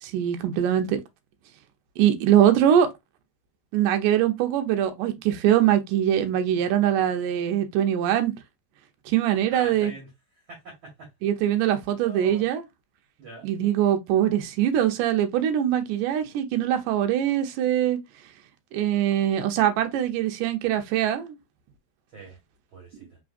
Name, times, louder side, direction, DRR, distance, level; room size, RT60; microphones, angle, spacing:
voice 1, 0.0-1.0 2.0-2.9 3.7-8.3 9.1-9.9 11.2-12.6 13.4-18.0 18.7-21.4, right 10 dB, 75° right, 2.2 m, -22 dB
voice 2, 9.3-10.1 10.5-11.1 11.6-12.5 13.2-13.5 22.1-22.4 22.7-23.2, right 2 dB, 45° right, 2.0 m, -44 dB
5.1 x 3.7 x 2.5 m
omnidirectional pair, 4.1 m